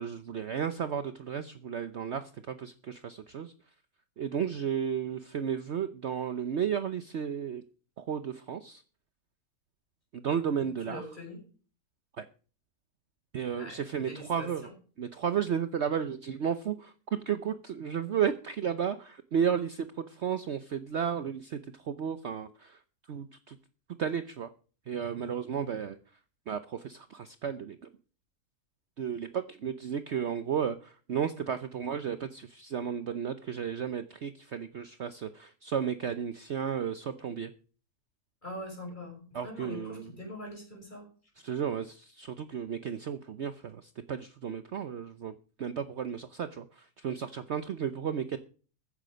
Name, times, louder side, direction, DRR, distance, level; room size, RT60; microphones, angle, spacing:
voice 1, 0.0-3.5 4.2-7.6 8.0-8.8 10.1-11.0 12.2-12.3 13.3-14.7 15.0-22.8 23.1-23.6 24.0-24.5 24.9-26.0 26.5-27.9 29.0-37.5 39.3-40.1 41.4-48.4, right 8 dB, 55° right, 11 dB, 0.9 m, -33 dB
voice 2, 10.9-11.4 13.6-14.7 38.4-41.1, left 1 dB, 30° left, 0 dB, 6.3 m, -43 dB
14.5 x 10.0 x 5.2 m, 0.39 s
omnidirectional pair, 1.7 m